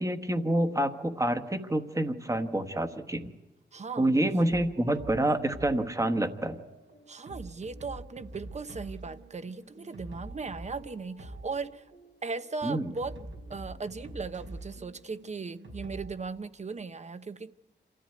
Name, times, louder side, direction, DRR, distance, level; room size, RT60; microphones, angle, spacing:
voice 1, 0.0-3.3 4.0-6.6 12.6-12.9, right 1 dB, 15° right, 1.2 m, -27 dB
voice 2, 3.7-4.7 7.1-11.9 12.2-17.5, right 4 dB, 40° right, 0.7 m, -38 dB
sound 1, 4.5-16.3, right 1 dB, 85° right, 5.2 m, -46 dB
27.0 x 14.0 x 9.4 m
wide cardioid pair, 155°, 19 cm